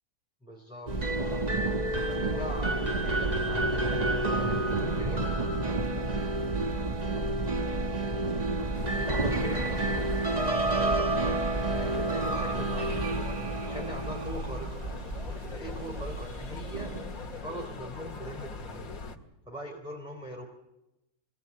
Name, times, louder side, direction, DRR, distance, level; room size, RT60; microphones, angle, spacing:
voice 1, 0.4-0.9 2.0-5.3 5.5-5.8 8.9-9.9 10.5-11.4 11.8-13.1 13.3-14.8 15.3-16.9 17.4-19.0 19.5-20.4, equal, 5° right, -1 dB, 3.5 m, -42 dB
sound 1, 0.9-17.4, right 2 dB, 30° right, 1.4 m, -30 dB
sound 2, 8.7-19.2, left 3 dB, 70° left, 2.2 m, -40 dB
25.0 x 18.0 x 8.4 m, 0.92 s
omnidirectional pair, 1.6 m